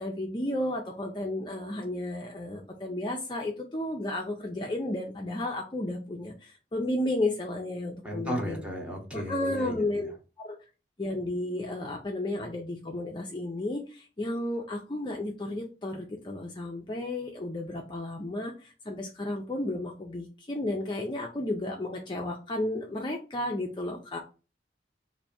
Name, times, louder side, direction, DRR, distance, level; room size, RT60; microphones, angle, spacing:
voice 1, 0.0-8.6 9.1-10.1 10.4-10.6 11.0-24.2, left 1 dB, 25° left, 1 dB, 0.5 m, -33 dB
voice 2, 8.0-10.1, equal, 5° right, 0 dB, 0.9 m, -35 dB
3.3 x 2.6 x 4.2 m, 0.33 s
head